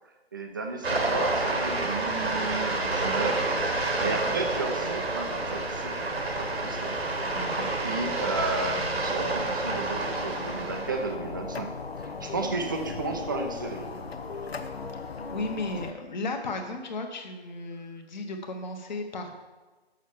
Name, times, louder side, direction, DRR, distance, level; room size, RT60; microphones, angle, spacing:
voice 1, 0.3-7.3 7.8-14.1, right 3 dB, 20° right, 4 dB, 0.5 m, -34 dB
sound 1, 0.8-11.1, right 2 dB, 75° right, 1.7 m, -29 dB
sound 2, 1.0-15.9, left 4 dB, 70° left, 0.9 m, -40 dB
voice 2, 4.0-4.3 6.6-6.8 7.3-7.7 15.3-19.3, left 2 dB, 45° left, 4 dB, 1.3 m, -35 dB
6.5 x 6.4 x 6.9 m, 1.2 s
figure-of-eight pair, 150°, 32 cm